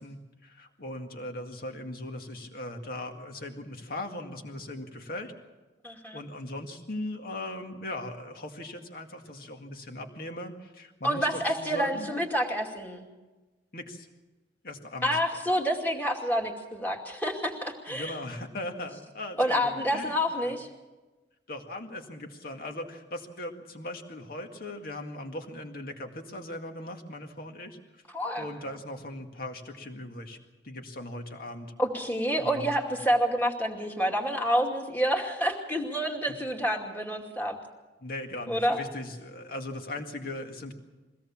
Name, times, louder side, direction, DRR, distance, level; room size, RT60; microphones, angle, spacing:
voice 1, 0.0-5.3 6.1-12.1 13.7-14.1 14.6-15.1 17.9-20.2 20.4-20.6 21.5-28.0 28.4-30.4 30.6-31.7 32.4-32.7 36.3-36.4 38.0-40.7, left 1 dB, 55° left, 4 dB, 2.0 m, -39 dB
voice 2, 5.8-6.2 11.0-13.0 15.0-18.2 19.4-20.7 28.1-28.5 31.8-37.6 38.5-38.8, equal, 10° left, 1 dB, 2.5 m, -28 dB
23.0 x 17.0 x 7.2 m, 1.2 s
head